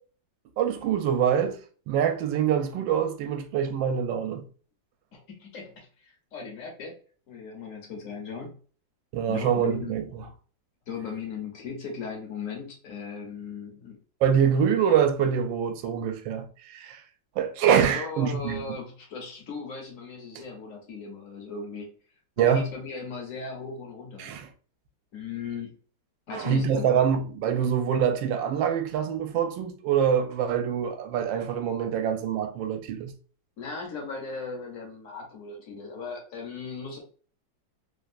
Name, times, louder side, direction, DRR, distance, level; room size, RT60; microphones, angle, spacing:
voice 1, 0.6-1.6 1.9-4.5 9.1-10.3 14.2-17.0 17.4-18.6 22.4-22.7 24.2-24.5 26.3-33.1, right 8 dB, 80° right, 1.3 m, -25 dB
voice 2, 5.1-6.9 7.3-8.6 9.3-9.9 10.9-14.0 17.9-21.9 22.4-24.3 25.1-25.7 26.3-26.9 33.6-37.0, left 5 dB, 55° left, 1.1 m, -37 dB
3.4 x 2.4 x 2.5 m
omnidirectional pair, 2.1 m